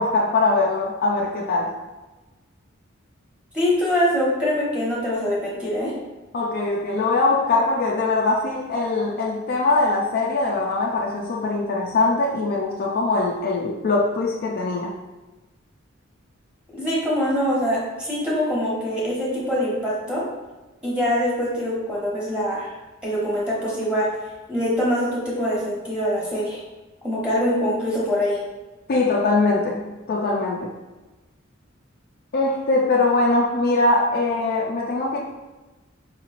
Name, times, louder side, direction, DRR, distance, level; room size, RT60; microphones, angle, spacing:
voice 1, 0.0-1.7 6.3-14.9 28.9-29.8 30.1-30.7 32.3-35.2, left 3 dB, 50° left, -3 dB, 0.4 m, -22 dB
voice 2, 3.5-5.9 16.7-20.2 20.8-22.7 23.0-24.1 24.5-26.6 27.0-28.4, equal, 5° right, -7 dB, 1.0 m, -24 dB
4.7 x 3.0 x 2.4 m, 1.1 s
head